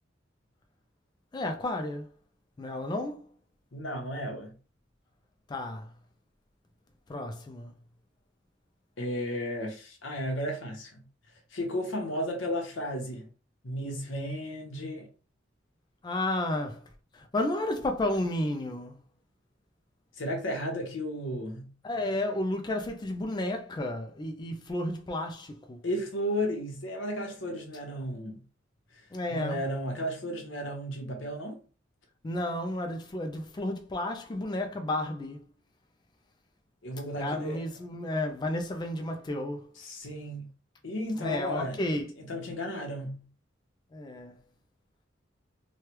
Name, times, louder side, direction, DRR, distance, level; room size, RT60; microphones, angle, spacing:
voice 1, 1.3-2.1 2.6-3.3 5.5-5.9 7.1-7.7 16.0-16.8 17.1-19.0 21.8-25.8 29.1-29.6 32.2-35.4 37.2-39.7 41.2-42.1 43.9-44.4, left 1 dB, 25° left, 0.3 m, -32 dB
voice 2, 3.7-4.5 9.0-11.0 11.5-13.3 13.6-15.1 20.2-21.7 25.8-28.4 29.3-31.6 36.8-37.6 39.8-40.5 40.8-41.8 42.2-43.3, equal, 85° left, 0.9 m, -34 dB
3.1 x 2.2 x 2.9 m
head